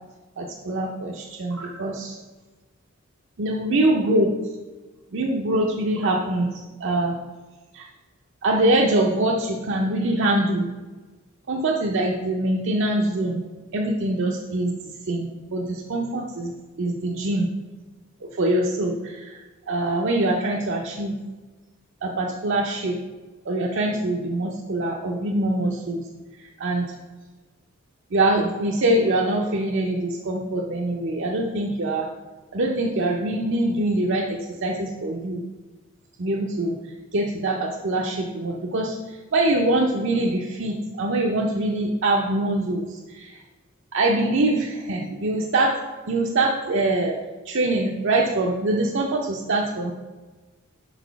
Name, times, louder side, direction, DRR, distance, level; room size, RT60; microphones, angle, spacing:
voice 1, 0.4-2.2 3.4-4.3 5.1-7.2 7.7-7.9 8.4-10.7 11.5-13.4 13.7-14.7 15.1-16.5 16.8-17.5 18.2-21.1 22.0-23.0 23.5-26.0 26.4-26.9 28.1-32.1 32.5-35.4 36.2-36.7 37.1-43.4 43.9-47.2 47.5-49.9, right 2 dB, 60° right, -1 dB, 0.6 m, -24 dB
4.8 x 4.1 x 5.7 m, 1.2 s
head